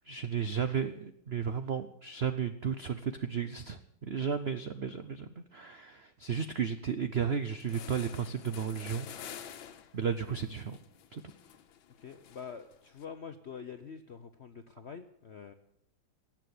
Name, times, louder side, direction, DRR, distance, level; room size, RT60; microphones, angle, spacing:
voice 1, 0.1-9.5 9.9-10.8 11.1-11.2, right 7 dB, 85° right, 10 dB, 0.5 m, -34 dB
sound 1, 7.2-7.3 7.6-13.0, left 9 dB, 85° left, 1.8 m, -49 dB
voice 2, 10.0-10.4 12.0-15.5, left 6 dB, 65° left, 8 dB, 0.6 m, -46 dB
18.0 x 7.5 x 9.4 m, 0.75 s
omnidirectional pair, 2.1 m